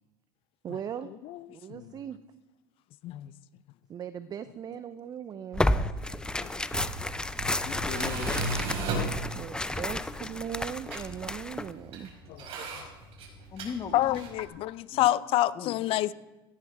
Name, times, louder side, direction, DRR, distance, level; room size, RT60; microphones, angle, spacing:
voice 1, 0.6-1.1 1.5-2.2 3.9-5.7 9.3-12.1 12.6-12.7, right 8 dB, 35° right, 0.7 m, -39 dB
voice 2, 1.2-1.9 3.0-3.3 6.4-6.5 12.3-12.5 13.9-16.1, left 14 dB, 50° left, 0.6 m, -28 dB
Tearing, 5.5-11.7, left 1 dB, 5° left, 0.6 m, -31 dB
Tools, 6.5-14.5, right 2 dB, 50° right, 5.6 m, -37 dB
voice 3, 7.6-8.5 13.5-14.2 14.9-15.1 15.5-15.8, left 6 dB, 35° left, 1.7 m, -38 dB
17.0 x 13.5 x 3.6 m
hypercardioid pair, 90°, 12 cm